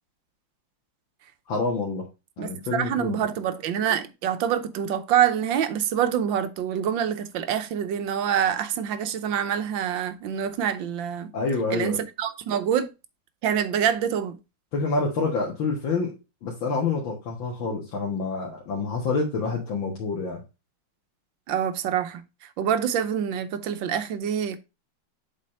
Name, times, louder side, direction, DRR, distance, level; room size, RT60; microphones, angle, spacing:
voice 1, 1.5-2.1 2.4-3.2 11.3-12.0 14.7-16.2 16.4-20.4, left 4 dB, 85° left, 2.3 m, -27 dB
voice 2, 2.4-11.3 11.7-12.9 13.4-14.4 21.5-22.2 22.6-24.6, right 9 dB, 80° right, 1.5 m, -26 dB
7.4 x 4.2 x 4.3 m
omnidirectional pair, 2.1 m